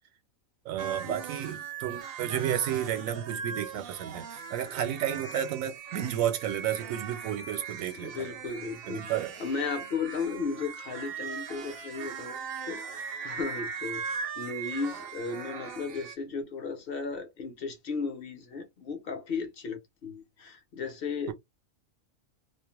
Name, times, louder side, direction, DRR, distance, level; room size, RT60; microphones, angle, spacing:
voice 1, 0.7-8.1 8.9-9.3 21.3-21.4, right 10 dB, 80° right, 1.0 m, -32 dB
sound 1, 0.8-16.2, right 6 dB, 60° right, 0.6 m, -39 dB
voice 2, 7.9-21.3, left 4 dB, 55° left, 0.7 m, -35 dB
2.4 x 2.0 x 2.9 m
omnidirectional pair, 1.4 m